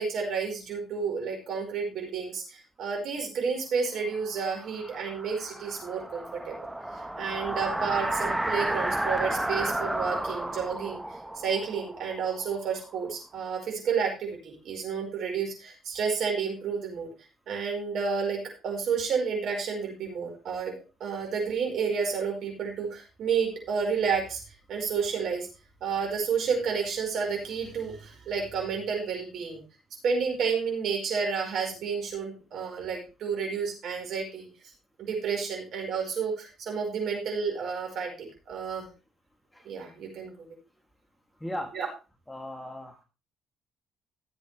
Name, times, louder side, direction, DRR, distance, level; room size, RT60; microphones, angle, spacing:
voice 1, 0.0-6.5 7.2-11.0 11.4-17.1 17.5-20.7 21.0-24.4 24.7-25.5 25.8-29.6 30.0-34.5 35.0-38.8 39.6-40.5 41.7-41.8, right 6 dB, 60° right, 1 dB, 5.1 m, -30 dB
sound 1, 4.2-13.0, right 1 dB, 10° right, 1.4 m, -32 dB
voice 2, 41.4-41.8 42.3-43.0, left 1 dB, 10° left, 4 dB, 2.8 m, -37 dB
15.0 x 8.0 x 3.4 m, 0.30 s
hypercardioid pair, 50°, 0 cm